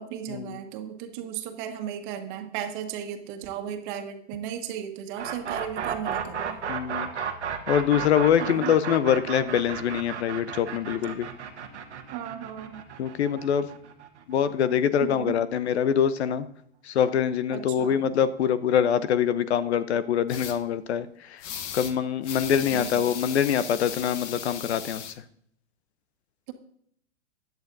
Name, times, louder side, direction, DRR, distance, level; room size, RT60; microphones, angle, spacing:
voice 1, 0.0-6.6 8.4-8.7 12.1-12.8 15.0-15.4 17.5-18.1 22.6-23.1, right 9 dB, 45° right, 6 dB, 1.5 m, -35 dB
sound 1, 5.2-15.0, right 7 dB, 90° right, 1.5 m, -33 dB
voice 2, 6.7-7.1 7.7-11.3 13.0-13.7 14.3-16.4 16.9-21.1 21.7-25.1, left 8 dB, 70° left, 15 dB, 0.8 m, -24 dB
sound 2, 20.3-20.6 21.4-21.9 22.2-25.1, left 9 dB, 45° left, 1.1 m, -37 dB
16.0 x 10.5 x 2.7 m, 0.68 s
hypercardioid pair, 120°, 34 cm